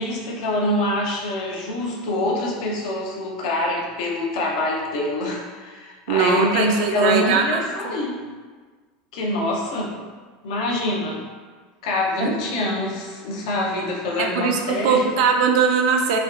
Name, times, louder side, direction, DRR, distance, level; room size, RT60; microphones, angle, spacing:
voice 1, 0.0-8.2 9.1-10.0 10.4-11.2 11.8-15.1, left 1 dB, 65° left, -2 dB, 0.6 m, -25 dB
voice 2, 6.1-7.9 12.2-12.3 14.2-16.2, right 6 dB, 70° right, 3 dB, 0.4 m, -21 dB
3.3 x 2.2 x 2.4 m, 1.5 s
supercardioid pair, 155°, 4 cm